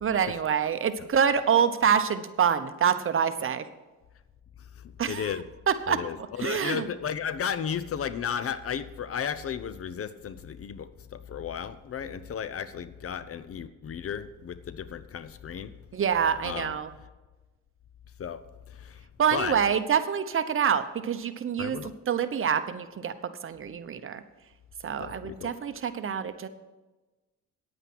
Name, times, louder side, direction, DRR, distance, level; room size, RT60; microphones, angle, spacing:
voice 1, 0.0-3.6 5.0-5.3 5.7-6.9 15.9-16.9 19.2-21.8 22.1-23.1 23.4-24.2 24.8-26.5, right 7 dB, 45° right, 11 dB, 0.9 m, -26 dB
voice 2, 4.8-5.4 5.9-15.7 16.4-16.8 18.2-18.4 18.7-19.0 19.3-19.6 21.6-21.9 25.0-25.5, left 7 dB, 50° left, 14 dB, 0.8 m, -34 dB
9.8 x 9.0 x 6.1 m, 1.1 s
cardioid pair, 90°, 30 cm